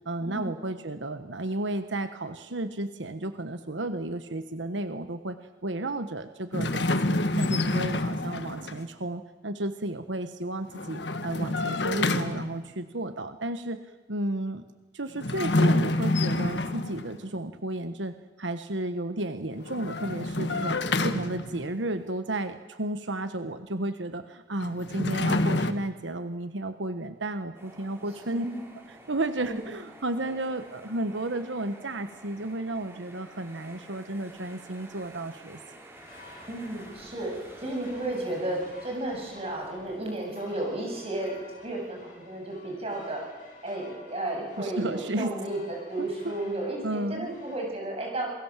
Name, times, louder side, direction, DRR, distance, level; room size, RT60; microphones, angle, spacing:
voice 1, 0.0-13.8 14.1-14.6 14.9-20.8 21.0-28.5 29.1-35.6 44.6-45.3 46.0-46.3 46.8-47.3, right 1 dB, 90° right, 9 dB, 1.3 m, -33 dB
sound 1, 6.5-8.8 10.7-12.7 15.1-17.2 19.6-21.7 24.6-25.7, left 2 dB, 70° left, 1.6 m, -27 dB
sound 2, 27.5-40.2, right 1 dB, 15° right, 4.7 m, -51 dB
voice 2, 28.3-28.6 29.4-29.6 36.5-41.4 41.6-43.2 43.6-48.3, right 1 dB, 35° right, 0 dB, 7.9 m, -33 dB
sound 3, 35.9-47.6, left 2 dB, 45° left, 7.8 m, -52 dB
28.0 x 22.5 x 7.5 m, 1.3 s
head